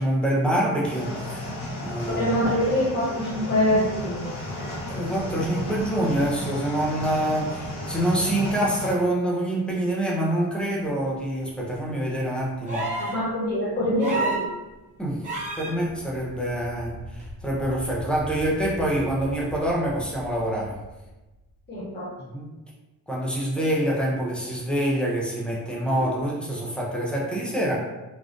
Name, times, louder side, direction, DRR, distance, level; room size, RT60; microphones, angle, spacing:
voice 1, 0.0-1.5 1.8-2.2 4.9-13.0 15.0-20.8 22.2-22.5 23.1-27.8, right 1 dB, 5° left, -4 dB, 0.4 m, -26 dB
sound 1, 0.8-8.9, left 1 dB, 85° left, 1.1 m, -34 dB
voice 2, 2.1-4.4 13.1-14.5 21.7-22.1 23.6-23.7 26.0-26.1, left 1 dB, 25° left, -7 dB, 1.1 m, -25 dB
sound 2, 12.7-13.2 14.0-14.5 15.2-15.7 17.2-17.3, right 2 dB, 20° right, 0.8 m, -29 dB
sound 3, 15.5-22.0, equal, 75° right, 0.7 m, -42 dB
3.5 x 2.4 x 2.5 m, 1.1 s
cardioid pair, 165°, 38 cm